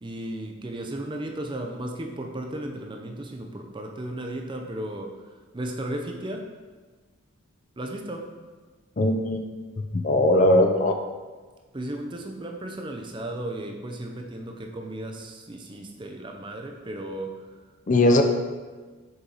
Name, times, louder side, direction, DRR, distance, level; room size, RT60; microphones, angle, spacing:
voice 1, 0.0-5.2 5.5-6.5 7.8-8.3 11.7-17.5, right 1 dB, 20° right, 3 dB, 0.5 m, -35 dB
voice 2, 9.0-9.4 9.9-11.0 17.9-18.2, left 1 dB, 35° left, 4 dB, 0.4 m, -19 dB
6.6 x 4.5 x 3.9 m, 1.4 s
head